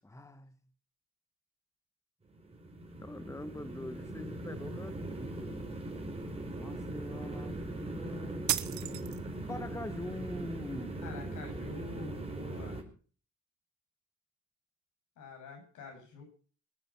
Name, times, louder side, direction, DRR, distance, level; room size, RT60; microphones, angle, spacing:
voice 1, 0.0-0.5 3.0-5.8 6.5-8.6 8.8-11.0, left 1 dB, 10° left, 11 dB, 1.3 m, -44 dB
sound 1, 2.3-12.8, right 2 dB, 20° right, 4.6 m, -40 dB
sound 2, 8.5-9.5, right 13 dB, 70° right, 1.0 m, -34 dB
voice 2, 11.0-12.8 15.2-16.2, left 3 dB, 75° left, 3 dB, 7.4 m, -46 dB
22.0 x 9.3 x 5.9 m, 0.41 s
cardioid pair, 90°, 30 cm